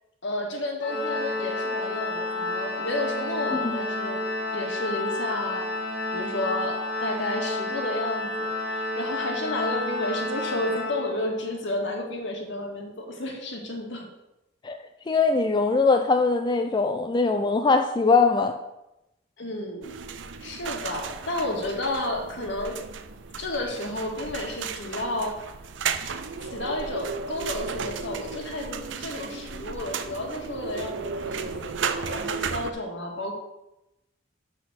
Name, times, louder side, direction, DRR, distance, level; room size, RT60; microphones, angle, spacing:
voice 1, 0.2-4.2 4.5-5.7 6.1-14.1 19.4-20.0 20.4-22.8 23.4-25.3 26.5-33.3, left 1 dB, 70° left, 2 dB, 1.7 m, -32 dB
Organ, 0.8-11.5, left 2 dB, 85° left, 2.4 m, -30 dB
voice 2, 15.1-18.5, left 4 dB, 25° left, 6 dB, 0.4 m, -21 dB
sound 1, 19.8-32.7, right 5 dB, 70° right, 0.6 m, -34 dB
6.1 x 6.0 x 6.4 m, 0.93 s
head